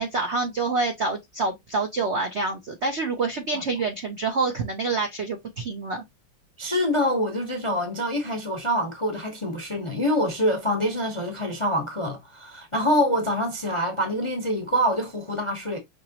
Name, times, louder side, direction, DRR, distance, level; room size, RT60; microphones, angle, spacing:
voice 1, 0.0-6.0, right 3 dB, 85° right, 0.6 m, -27 dB
voice 2, 6.6-15.8, equal, 35° left, 0.5 m, -25 dB
5.8 x 2.9 x 2.9 m
omnidirectional pair, 2.4 m